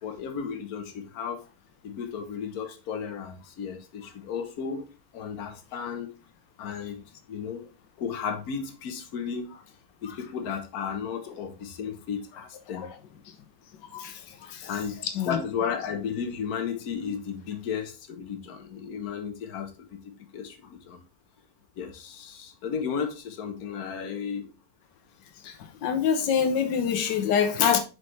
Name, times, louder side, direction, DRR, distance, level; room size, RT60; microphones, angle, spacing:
voice 1, 0.0-1.4 1.8-4.8 5.1-6.1 6.6-7.0 7.3-7.7 8.0-9.5 10.0-12.9 14.7-19.9 20.3-21.0 21.8-24.5, left 6 dB, 65° left, 1.4 m, -34 dB
voice 2, 15.0-15.4 25.4-25.5 25.8-27.8, left 7 dB, 85° left, 1.4 m, -25 dB
6.7 x 4.6 x 3.2 m
omnidirectional pair, 1.8 m